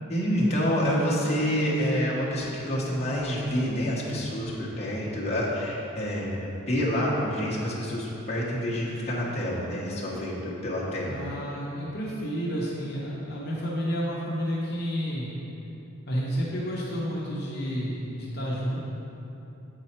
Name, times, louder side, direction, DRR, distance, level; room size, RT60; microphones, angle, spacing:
voice 1, 0.1-11.2, equal, 30° left, -6 dB, 1.0 m, -28 dB
voice 2, 11.1-15.3 16.1-18.8, equal, 50° left, -6 dB, 0.9 m, -30 dB
7.8 x 4.2 x 4.3 m, 2.9 s
head